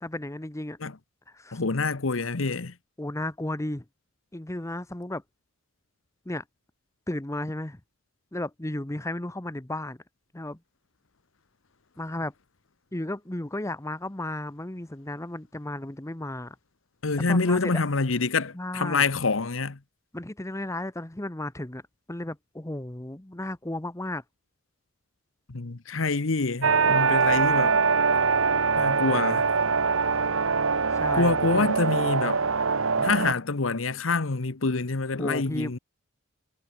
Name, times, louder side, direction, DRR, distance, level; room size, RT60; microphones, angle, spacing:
voice 1, 0.0-0.8 1.3-1.6 3.0-3.8 4.3-5.2 6.3-6.4 7.1-7.8 8.3-10.0 10.3-10.6 12.0-12.3 12.9-16.5 17.3-17.8 18.5-19.1 20.1-21.8 22.1-24.2 31.0-31.7 35.2-35.8, left 1 dB, 15° left, 1.0 m, -34 dB
voice 2, 1.5-2.7 17.0-19.8 25.5-27.8 28.8-29.5 31.1-32.4 33.0-35.8, left 3 dB, 75° left, 1.1 m, -26 dB
sound 1, 26.6-33.3, right 5 dB, 85° right, 1.2 m, -23 dB
head